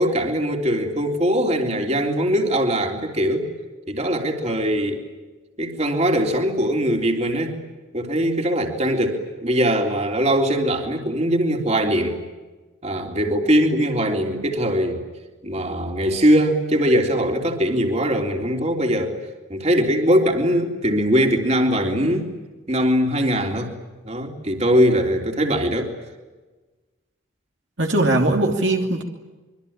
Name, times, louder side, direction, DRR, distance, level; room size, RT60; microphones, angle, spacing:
voice 1, 0.0-3.5 3.9-5.0 5.6-7.6 7.9-12.1 12.8-15.0 15.4-19.2 19.5-22.3 22.7-23.7 24.0-25.9, equal, 30° right, 2 dB, 3.6 m, -21 dB
voice 2, 27.8-29.0, right 2 dB, 65° right, 1 dB, 2.9 m, -20 dB
25.5 x 24.5 x 8.9 m, 1.2 s
head